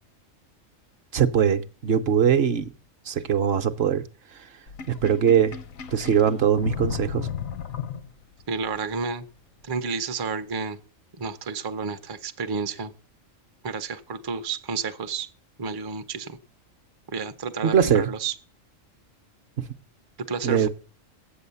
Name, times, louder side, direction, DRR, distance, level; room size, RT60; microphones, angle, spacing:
voice 1, 1.1-2.7 3.1-4.0 4.9-5.6 5.9-7.3 17.6-18.0 20.4-20.7, right 8 dB, 60° right, 0.8 m, -21 dB
Sink (filling or washing), 4.7-8.4, left 8 dB, 90° left, 1.2 m, -34 dB
voice 2, 8.5-9.2 9.7-10.8 11.2-12.9 13.6-15.3 15.6-16.4 17.1-18.3 20.3-20.7, right 5 dB, 35° right, 0.4 m, -31 dB
8.6 x 7.8 x 6.9 m
omnidirectional pair, 1.4 m